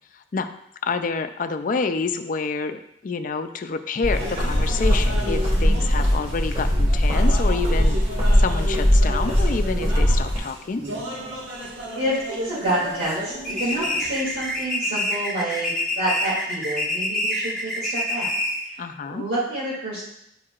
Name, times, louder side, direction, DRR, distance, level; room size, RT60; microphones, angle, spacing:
voice 1, 0.1-0.5 0.8-10.8 18.8-19.2, left 4 dB, 45° left, 9 dB, 0.4 m, -28 dB
sound 1, 4.0-10.4, equal, 40° right, 2.8 m, -20 dB
sound 2, 4.1-14.6, equal, 90° right, 1.4 m, -34 dB
voice 2, 11.9-18.3 18.7-18.8 19.1-20.0, right 1 dB, 65° right, -10 dB, 2.5 m, -28 dB
sound 3, 13.4-18.7, left 1 dB, ahead, 1.0 m, -26 dB
10.5 x 4.6 x 2.4 m, 0.77 s
head